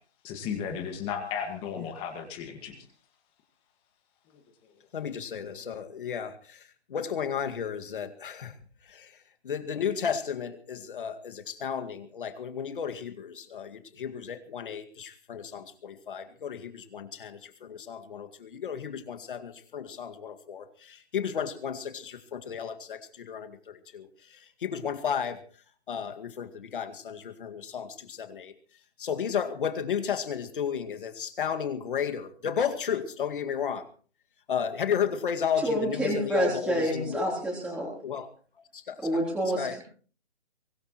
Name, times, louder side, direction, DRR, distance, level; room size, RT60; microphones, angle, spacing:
voice 1, 0.2-2.8 4.3-4.7 5.5-5.6, left 7 dB, 15° left, 5 dB, 1.9 m, -35 dB
voice 2, 4.9-6.6 6.9-8.5 8.9-9.1 9.4-25.4 25.9-28.5 29.0-33.9 34.5-37.3 38.0-38.3 38.7-39.0 39.6-39.8, left 7 dB, 50° left, 7 dB, 2.2 m, -33 dB
voice 3, 35.6-37.9 39.0-39.8, right 1 dB, ahead, -5 dB, 3.6 m, -28 dB
23.5 x 17.5 x 3.1 m, 0.41 s
hypercardioid pair, 155°, 33 cm